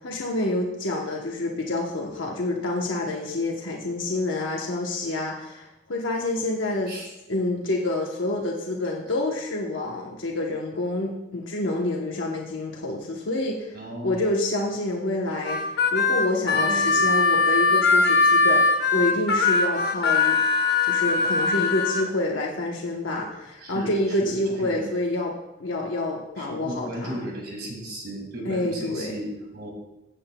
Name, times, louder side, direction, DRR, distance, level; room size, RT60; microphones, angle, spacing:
voice 1, 0.0-6.9 7.3-20.4 20.8-25.3 25.6-27.2 28.5-29.2, left 2 dB, 85° left, -1 dB, 1.0 m, -28 dB
voice 2, 13.7-14.2 16.5-17.2 23.6-24.9 26.4-29.7, right 1 dB, 55° right, 0 dB, 2.0 m, -35 dB
Harmonica, 15.4-22.0, left 3 dB, 55° left, 0.9 m, -21 dB
15.5 x 7.8 x 2.2 m, 0.96 s
head